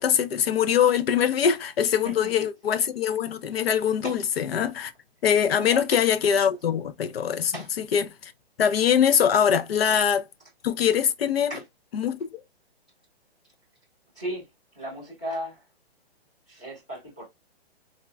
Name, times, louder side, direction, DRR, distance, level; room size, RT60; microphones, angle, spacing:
voice 1, 0.0-4.9 5.2-7.6 7.9-8.3 8.6-10.2 10.6-11.5 11.9-12.4, left 8 dB, 70° left, 0.6 m, -23 dB
voice 2, 5.7-6.0 6.3-6.5 7.5-7.7 9.8-10.0 11.5-11.6 14.1-14.4 14.7-15.6 16.5-17.3, equal, 5° left, 0.4 m, -35 dB
3.6 x 2.2 x 2.4 m
hypercardioid pair, 170°, 32 cm